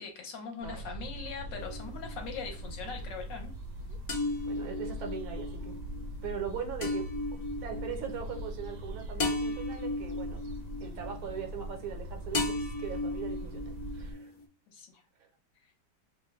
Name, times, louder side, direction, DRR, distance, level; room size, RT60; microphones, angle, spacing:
voice 1, 0.0-3.5 14.7-15.0, left 5 dB, 65° left, 3 dB, 1.5 m, -41 dB
sound 1, 0.6-14.1, equal, 65° right, 1.2 m, -41 dB
sound 2, 1.6-2.5 4.1-12.0 12.3-14.4, left 2 dB, 45° left, 1.2 m, -36 dB
voice 2, 4.5-5.7 6.2-7.1 7.6-10.4 10.8-14.3, right 7 dB, 80° right, 5 dB, 1.7 m, -40 dB
5.3 x 2.2 x 3.1 m, 0.35 s
omnidirectional pair, 2.2 m